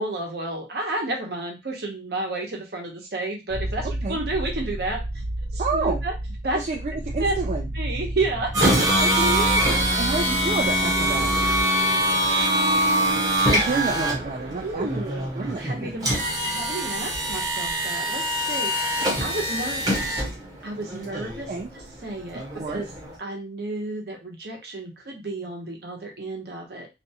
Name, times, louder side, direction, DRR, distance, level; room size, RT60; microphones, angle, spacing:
voice 1, 0.0-5.0 5.5-6.2 6.4-6.6 7.2-7.4 7.7-9.1 10.4-10.6 11.7-13.3 14.6-16.1 16.4-20.2 20.6-21.5 22.0-22.9 23.2-26.9, right 2 dB, 60° right, 1 dB, 0.8 m, -31 dB
sound 1, 3.5-11.6, right 1 dB, 30° left, 0.4 m, -31 dB
voice 2, 5.6-6.0 6.5-7.7 9.0-11.3 13.5-14.9 15.4-15.9 21.5-21.7 22.6-22.8, right 3 dB, 40° right, 0 dB, 0.3 m, -29 dB
sound 2, 8.5-23.2, equal, 20° right, 0.8 m, -24 dB
2.5 x 2.3 x 2.7 m, 0.24 s
head